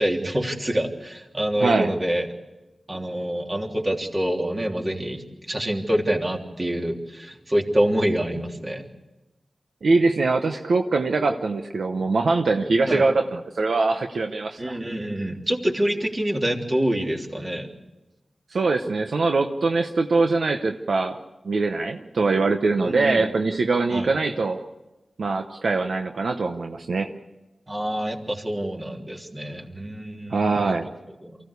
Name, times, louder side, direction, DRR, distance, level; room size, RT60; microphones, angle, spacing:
voice 1, 0.0-2.3 2.9-8.9 12.8-13.1 14.6-17.7 22.8-23.3 23.9-24.1 27.7-30.8 31.2-31.4, right 1 dB, 35° right, 1 dB, 3.2 m, -26 dB
voice 2, 1.6-1.9 9.8-14.8 18.5-21.2 21.4-24.6 25.2-27.1 30.3-30.9, right 3 dB, 80° right, 5 dB, 1.0 m, -23 dB
24.0 x 15.5 x 8.3 m, 1.0 s
cardioid pair, 45°, 0 cm